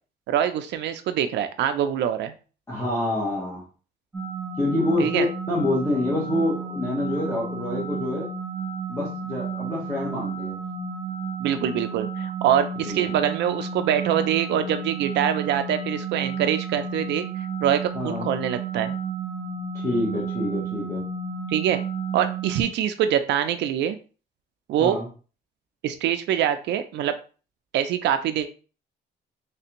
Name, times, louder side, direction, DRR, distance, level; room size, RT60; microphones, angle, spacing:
voice 1, 0.3-2.3 5.0-5.3 11.4-17.2 17.6-19.0 21.5-21.8 22.1-24.0 24.7-25.0 25.8-27.2 27.7-28.5, right 10 dB, 85° right, 9 dB, 0.4 m, -24 dB
voice 2, 2.7-3.6 4.6-8.3 8.9-10.6 12.9-13.0 17.9-18.3 19.7-21.1 24.8-25.1, left 2 dB, 15° left, -6 dB, 0.9 m, -27 dB
sound 1, 4.1-22.6, right 5 dB, 15° right, 0.9 m, -32 dB
3.3 x 3.3 x 2.9 m, 0.37 s
cardioid pair, 170°, 18 cm